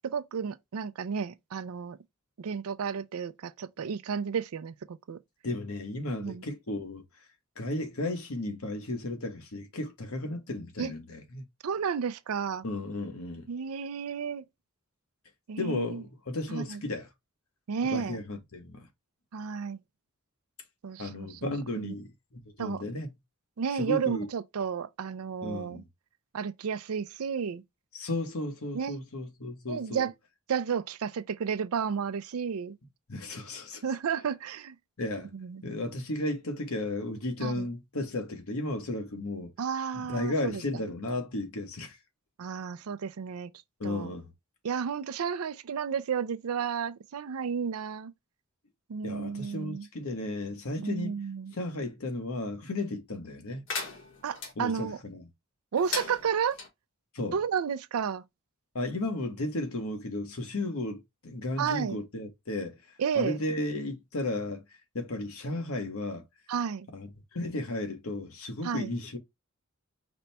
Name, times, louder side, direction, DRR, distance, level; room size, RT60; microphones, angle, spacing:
voice 1, 0.0-2.0 2.4-5.2 6.2-6.4 10.8-10.9 11.6-12.6 13.5-14.5 15.5-16.0 16.5-16.8 17.7-18.2 19.3-19.8 20.8-22.0 22.6-22.8 23.6-25.8 26.3-27.6 28.7-29.0 29.7-30.1 30.5-32.8 33.8-34.8 35.3-35.6 37.4-37.7 39.6-40.6 42.4-43.5 43.8-44.1 44.6-48.1 48.9-49.9 50.8-51.5 54.2-55.0 55.7-56.6 57.3-58.2 61.6-62.0 63.0-63.4 66.5-66.9 68.6-68.9, right 6 dB, 85° right, 0.4 m, -32 dB
voice 2, 5.4-7.0 7.6-11.5 12.6-13.5 15.6-17.1 17.9-18.9 21.0-23.1 23.8-24.3 25.4-25.8 27.9-30.1 33.1-33.8 35.0-35.3 35.6-39.5 39.9-42.0 43.8-44.3 49.0-51.2 51.5-53.6 54.6-55.2 57.1-57.4 58.7-62.8 63.1-64.6 64.9-66.2 66.9-69.2, left 2 dB, 85° left, 1.2 m, -34 dB
sound 1, 53.7-54.5 55.8-56.7, left 4 dB, 60° left, 1.4 m, -36 dB
5.1 x 2.2 x 4.1 m
head